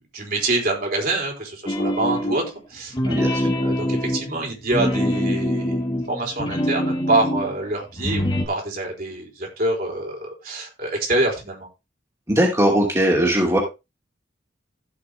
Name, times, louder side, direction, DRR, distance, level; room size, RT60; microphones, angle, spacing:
voice 1, 0.1-3.1 3.6-11.7, right 2 dB, 55° right, 0 dB, 4.5 m, -26 dB
sound 1, 1.7-2.5 2.9-7.5 7.9-8.5, left 1 dB, 25° left, 2.5 m, -24 dB
voice 2, 3.1-3.5 12.3-13.6, right 1 dB, 15° right, -2 dB, 2.6 m, -19 dB
15.5 x 5.8 x 3.6 m, 0.26 s
head